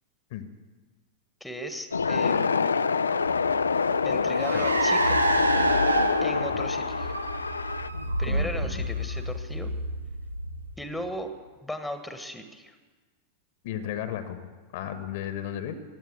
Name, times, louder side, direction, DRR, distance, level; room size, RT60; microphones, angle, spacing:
voice 1, 1.4-2.8 4.0-5.2 6.2-7.1 8.2-9.7 10.8-11.3 11.6-12.7, equal, 5° left, 8 dB, 1.4 m, -37 dB
sound 1, 1.9-7.9, left 5 dB, 75° left, 0.4 m, -26 dB
Car, 3.2-11.0, right 1 dB, 85° right, 0.9 m, -28 dB
voice 2, 8.2-8.8 13.6-14.5 14.7-15.7, left 11 dB, 50° left, 10 dB, 1.2 m, -34 dB
16.0 x 9.9 x 8.2 m, 1.4 s
figure-of-eight pair, 90°, 0 cm